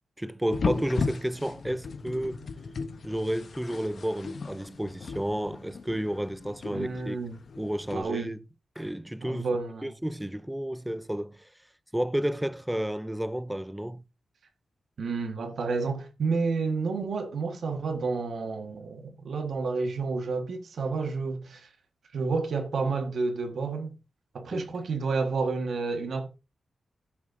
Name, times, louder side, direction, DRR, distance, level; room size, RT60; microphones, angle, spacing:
voice 1, 0.2-2.5 3.0-7.2 7.6-8.4 8.8-9.5 9.8-11.5 11.9-14.0 24.5-24.7, right 1 dB, 5° right, 0.4 m, -31 dB
sound 1, 0.5-8.0, left 4 dB, 55° left, 0.8 m, -36 dB
voice 2, 6.7-7.4 7.9-8.3 9.2-9.9 15.0-21.7 22.1-23.9 24.3-26.3, right 4 dB, 65° right, 1.4 m, -30 dB
16.5 x 6.1 x 2.6 m
wide cardioid pair, 140°, 0 cm